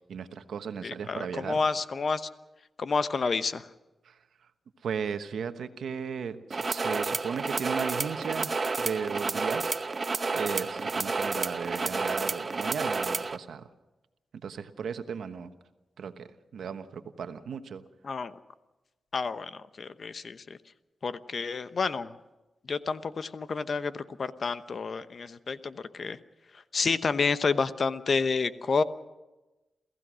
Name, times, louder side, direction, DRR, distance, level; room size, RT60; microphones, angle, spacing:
voice 1, 0.1-1.6 4.0-4.2 4.8-9.7 10.3-13.7 14.4-15.5 16.0-17.8, right 6 dB, 80° right, 9 dB, 1.2 m, -36 dB
voice 2, 0.8-2.3 2.8-3.6 18.0-18.3 19.1-20.4 21.0-22.1 22.7-26.2 26.7-28.8, left 4 dB, 55° left, 12 dB, 1.0 m, -29 dB
sound 1, 6.5-13.4, right 4 dB, 45° right, 0.8 m, -30 dB
28.0 x 15.5 x 6.3 m, 1.1 s
cardioid pair, 65°, 0 cm